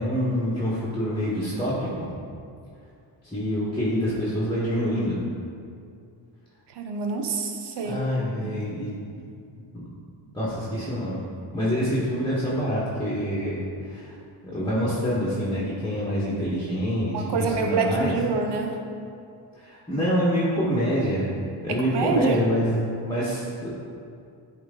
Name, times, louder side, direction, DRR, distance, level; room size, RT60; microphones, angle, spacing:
voice 1, 0.0-1.9 3.2-5.2 7.8-9.0 9.7-9.9 10.3-11.2 11.5-14.1 14.4-18.1 19.6-21.3 21.6-23.7, equal, 10° left, -8 dB, 1.4 m, -26 dB
voice 2, 6.8-8.0 8.4-8.5 17.1-18.8 21.7-22.4, right 4 dB, 60° right, 4 dB, 0.9 m, -26 dB
9.3 x 3.2 x 3.8 m, 2.4 s
cardioid pair, 85°, 46 cm